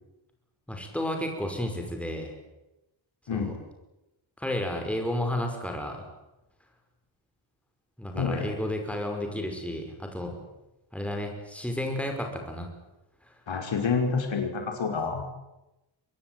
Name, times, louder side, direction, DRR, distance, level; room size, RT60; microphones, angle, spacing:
voice 1, 0.7-2.3 3.3-3.5 4.4-6.1 8.0-10.4 10.9-12.7 13.3-13.4, left 1 dB, 5° left, 3 dB, 5.5 m, -32 dB
voice 2, 8.1-8.5 13.5-15.2, left 5 dB, 70° left, 3 dB, 5.4 m, -28 dB
24.5 x 20.5 x 9.4 m, 0.96 s
wide cardioid pair, 120°, 48 cm